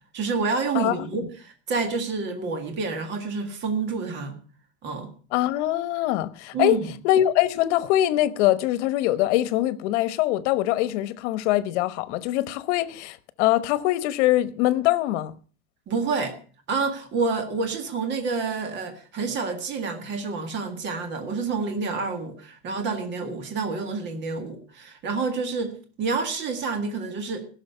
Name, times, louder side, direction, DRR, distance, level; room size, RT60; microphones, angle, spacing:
voice 1, 0.1-4.4 4.8-5.1 6.5-6.9 15.9-16.4 16.7-27.4, right 4 dB, 30° right, 1.8 m, -28 dB
voice 2, 0.7-1.1 5.3-6.8 7.0-15.4, left 14 dB, 70° left, 1.1 m, -23 dB
16.0 x 6.6 x 6.6 m
cardioid pair, 170°, 36 cm